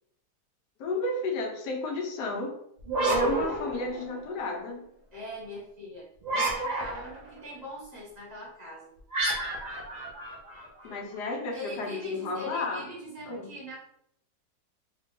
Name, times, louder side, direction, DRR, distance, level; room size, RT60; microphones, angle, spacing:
voice 1, 0.8-2.6 3.1-4.9 10.8-12.8 13.3-13.5, left 2 dB, 90° left, 1 dB, 1.4 m, -32 dB
sound 1, 2.8-4.4 6.2-7.3 9.1-11.0, right 2 dB, 40° right, 0.6 m, -30 dB
voice 2, 5.1-6.1 6.3-8.9 11.5-13.8, equal, 25° right, -6 dB, 1.4 m, -41 dB
3.7 x 2.3 x 3.7 m, 0.73 s
omnidirectional pair, 1.7 m